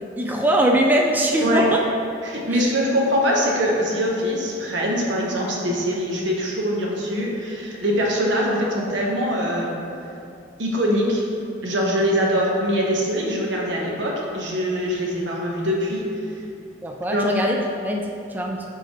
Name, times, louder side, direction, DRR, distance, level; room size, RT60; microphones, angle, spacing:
voice 1, 0.0-1.8 16.8-18.6, right 1 dB, 10° right, 1 dB, 0.3 m, -22 dB
voice 2, 2.2-9.8 10.6-11.2 11.6-16.1 17.1-17.2, equal, 80° right, -2 dB, 1.1 m, -23 dB
6.9 x 4.9 x 3.0 m, 2.6 s
head